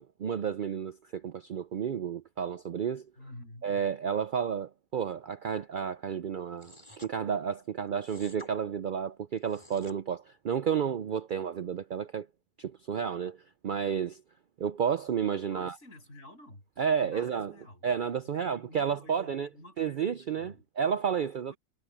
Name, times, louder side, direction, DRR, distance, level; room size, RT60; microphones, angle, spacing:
voice 1, 0.0-3.1 3.6-6.7 7.0-12.3 12.6-14.2 14.6-15.7 16.8-17.5 17.8-19.5 19.8-21.5, right 7 dB, 90° right, 0.4 m, -31 dB
voice 2, 3.2-3.7 15.5-16.6 17.0-17.8 18.3-20.6 21.5-21.6, left 1 dB, 55° left, 8.3 m, -50 dB
sound 1, 6.6-7.1 8.0-8.5 9.4-10.0, left 1 dB, 20° left, 4.7 m, -50 dB
omnidirectional pair, 1.5 m